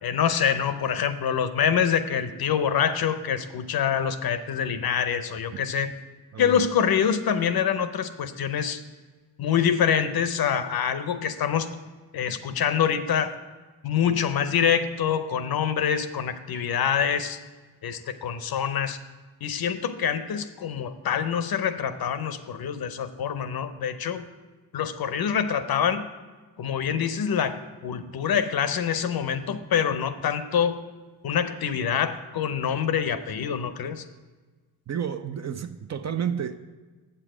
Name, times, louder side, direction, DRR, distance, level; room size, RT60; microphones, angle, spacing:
voice 1, 0.0-5.9 6.4-8.8 9.4-11.7 12.1-13.3 13.8-17.4 17.8-19.0 19.4-24.2 24.7-26.1 26.6-30.8 31.2-34.0, left 8 dB, 50° left, 11 dB, 0.7 m, -25 dB
voice 2, 6.3-6.7 34.9-36.6, right 8 dB, 35° right, 9 dB, 0.5 m, -31 dB
7.4 x 6.8 x 4.9 m, 1.3 s
supercardioid pair, 55°, 48 cm